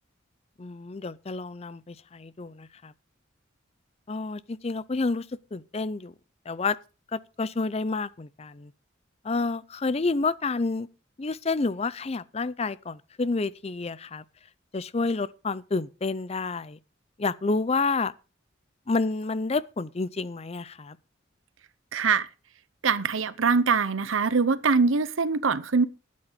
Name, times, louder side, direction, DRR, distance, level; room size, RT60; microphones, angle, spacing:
voice 1, 0.6-2.9 4.1-6.1 6.5-6.8 7.1-8.7 9.2-10.9 11.2-14.2 14.7-16.8 17.2-18.1 18.9-21.0, left 3 dB, 30° left, 0.5 m, -29 dB
voice 2, 21.9-22.3 22.8-25.9, right 5 dB, 80° right, 0.8 m, -23 dB
12.0 x 8.5 x 5.1 m
head